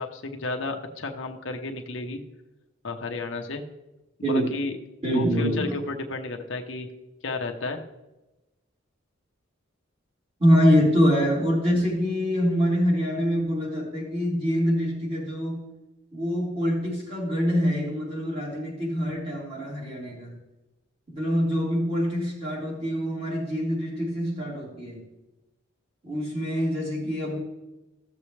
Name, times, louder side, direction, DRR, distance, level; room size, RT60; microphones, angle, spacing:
voice 1, 0.0-2.2 2.8-3.6 4.3-4.7 5.1-6.9 7.2-7.8, left 3 dB, 65° left, 4 dB, 0.9 m, -32 dB
voice 2, 5.0-5.7 10.4-15.7 16.1-20.4 21.1-25.0 26.0-27.4, equal, 30° right, -5 dB, 3.3 m, -25 dB
14.5 x 7.1 x 3.3 m, 1.0 s
head